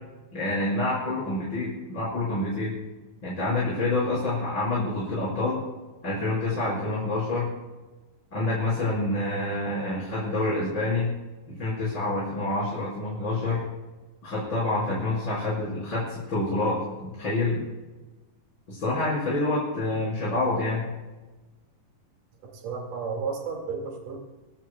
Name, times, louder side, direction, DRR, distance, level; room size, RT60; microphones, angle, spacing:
voice 1, 0.3-2.8 3.2-5.6 6.0-7.5 8.3-11.1 11.5-13.6 14.2-17.6 18.7-20.9, left 2 dB, 30° left, -7 dB, 6.0 m, -27 dB
voice 2, 22.4-24.2, right 5 dB, 65° right, 1 dB, 3.8 m, -33 dB
24.0 x 18.5 x 2.3 m, 1.2 s
omnidirectional pair, 4.1 m